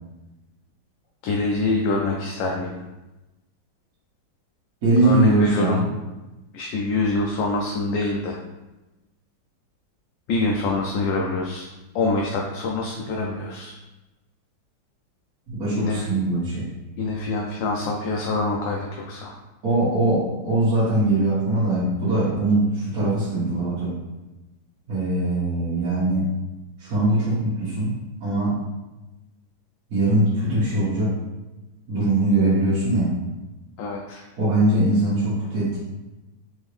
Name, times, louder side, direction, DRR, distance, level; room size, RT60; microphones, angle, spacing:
voice 1, 1.2-2.8 5.0-5.8 6.5-8.4 10.3-11.7 11.9-13.7 15.7-16.1 17.0-19.4 33.8-34.2, left 3 dB, 75° left, -1 dB, 1.1 m, -25 dB
voice 2, 4.8-5.9 15.5-16.7 19.6-23.9 24.9-26.2 26.8-27.9 28.2-28.6 29.9-31.1 31.9-33.2 34.4-35.8, right 2 dB, 50° right, -10 dB, 1.6 m, -21 dB
4.0 x 3.7 x 3.1 m, 1.1 s
omnidirectional pair, 2.3 m